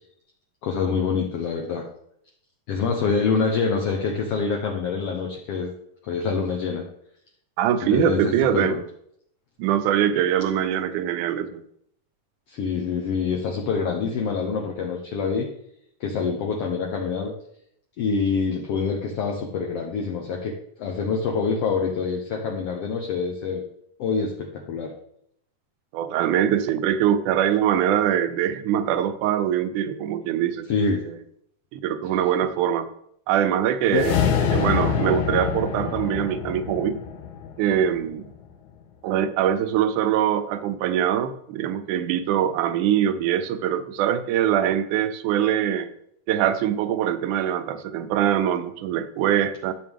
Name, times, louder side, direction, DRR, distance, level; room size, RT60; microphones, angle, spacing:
voice 1, 0.6-1.9 2.7-5.7 6.0-6.9 7.9-8.8 12.5-15.5 16.0-17.3 18.0-23.6 24.0-24.9 30.7-31.0 33.9-34.1, left 5 dB, 65° left, 1 dB, 1.7 m, -26 dB
voice 2, 7.6-8.8 9.6-11.6 25.9-30.7 31.0-31.1 31.7-32.9 33.3-34.2 34.5-37.0 37.6-38.3 39.0-45.9 46.3-49.7, right 10 dB, 85° right, 11 dB, 2.2 m, -23 dB
sound 1, 33.9-38.3, left 8 dB, 80° left, 2.5 m, -26 dB
12.5 x 7.5 x 3.6 m, 0.73 s
omnidirectional pair, 3.5 m